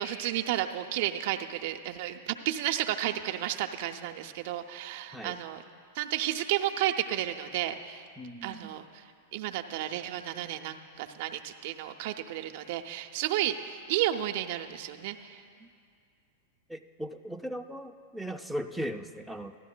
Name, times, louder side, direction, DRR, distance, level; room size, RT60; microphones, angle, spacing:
voice 1, 0.0-5.6 5.9-8.0 8.4-8.8 9.3-15.4, right 12 dB, 60° right, 5 dB, 0.5 m, -32 dB
voice 2, 8.2-8.7 15.6-15.7 16.7-19.6, equal, ahead, 6 dB, 0.4 m, -38 dB
15.0 x 12.0 x 2.2 m, 2.3 s
hypercardioid pair, 100°, 0 cm